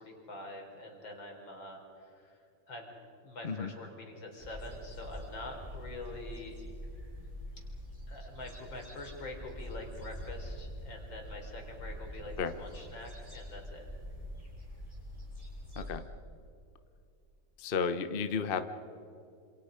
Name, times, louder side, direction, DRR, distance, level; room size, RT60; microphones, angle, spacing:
voice 1, 0.0-2.9 3.2-6.6 8.1-13.9, left 2 dB, 85° left, 2 dB, 4.6 m, -45 dB
sound 1, 4.4-15.9, equal, 15° right, 7.1 m, -45 dB
voice 2, 17.6-18.6, left 5 dB, 40° left, 10 dB, 0.9 m, -32 dB
27.5 x 27.5 x 5.1 m, 2.5 s
omnidirectional pair, 2.1 m